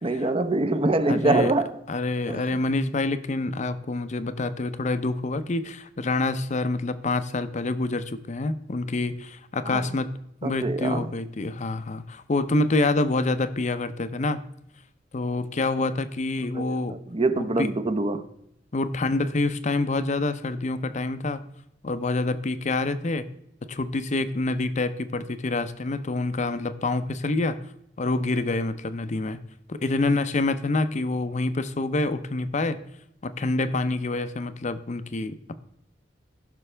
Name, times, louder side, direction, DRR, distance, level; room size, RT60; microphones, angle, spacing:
voice 1, 0.0-1.8 2.3-2.4 9.6-9.8 10.4-11.1 16.5-18.2, right 2 dB, 30° right, 0.7 m, -24 dB
voice 2, 1.1-1.5 1.9-10.1 10.4-14.4 15.1-17.0 17.4-17.7 18.7-21.4 21.8-23.2 23.7-27.6 28.0-29.4 29.7-32.8 33.2-35.4, left 2 dB, 40° left, 0.6 m, -27 dB
15.5 x 6.0 x 3.3 m
head